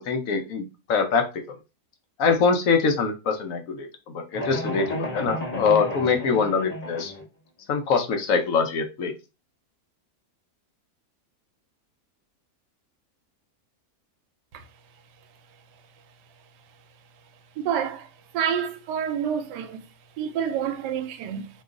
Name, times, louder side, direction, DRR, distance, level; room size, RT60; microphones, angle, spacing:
voice 1, 0.0-1.6 2.2-7.1 7.7-9.1, left 5 dB, 65° left, 0.9 m, -24 dB
sound 1, 4.3-7.2, left 1 dB, 30° left, 0.8 m, -32 dB
voice 2, 17.6-18.1 18.3-19.8 20.2-21.5, right 8 dB, 85° right, 1.2 m, -28 dB
3.0 x 2.3 x 3.7 m
omnidirectional pair, 1.8 m